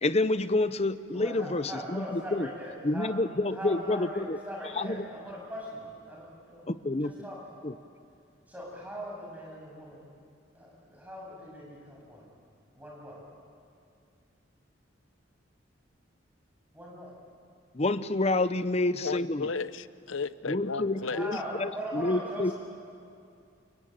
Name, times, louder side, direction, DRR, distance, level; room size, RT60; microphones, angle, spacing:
voice 1, 0.0-2.5 2.8-4.4 4.8-4.9 6.7-7.1 7.6-7.7 17.7-19.5 20.5-22.5, left 2 dB, 35° left, 13 dB, 0.8 m, -28 dB
voice 2, 1.1-3.1 3.4-7.4 8.5-10.0 10.5-12.3 12.7-13.2 16.7-17.1 20.9-22.5, equal, 10° right, -3 dB, 7.8 m, -40 dB
voice 3, 19.0-21.3, left 4 dB, 90° left, 15 dB, 0.8 m, -34 dB
29.0 x 23.5 x 8.9 m, 2.4 s
head